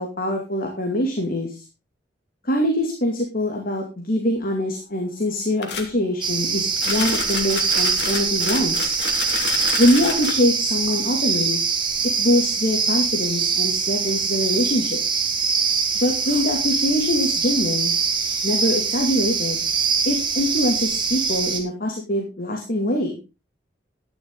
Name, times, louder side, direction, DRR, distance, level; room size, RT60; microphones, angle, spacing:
voice 1, 0.0-1.6 2.4-8.9 9.8-11.6 12.2-15.0 16.0-17.9 18.4-19.6 20.1-23.2, left 1 dB, 55° left, 1 dB, 2.6 m, -23 dB
sound 1, 5.6-5.9 6.8-10.3, left 5 dB, 80° left, 2.5 m, -29 dB
sound 2, 6.2-21.6, right 5 dB, 30° right, 2.3 m, -23 dB
12.0 x 11.0 x 3.9 m, 0.29 s
head